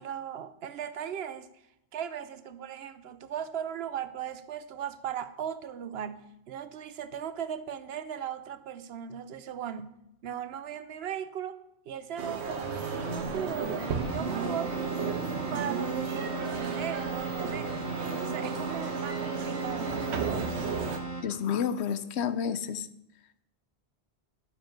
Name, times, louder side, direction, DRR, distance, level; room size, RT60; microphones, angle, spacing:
voice 1, 0.0-1.5 1.9-14.8 15.5-17.7 18.1-20.7, right 9 dB, 70° right, 0.9 m, -38 dB
sound 1, 12.2-21.0, right 5 dB, 90° right, 1.2 m, -34 dB
Keyboard (musical), 12.6-21.6, right 3 dB, 35° left, 3.3 m, -37 dB
voice 2, 21.2-22.9, left 7 dB, 90° left, 0.9 m, -30 dB
11.5 x 7.3 x 4.4 m
omnidirectional pair, 1.1 m